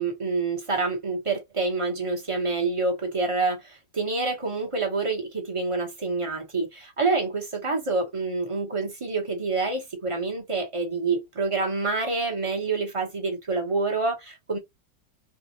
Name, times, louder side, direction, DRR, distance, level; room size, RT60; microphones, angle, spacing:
voice 1, 0.0-14.6, right 3 dB, 30° right, 0.6 m, -27 dB
3.6 x 2.4 x 2.8 m
omnidirectional pair, 2.0 m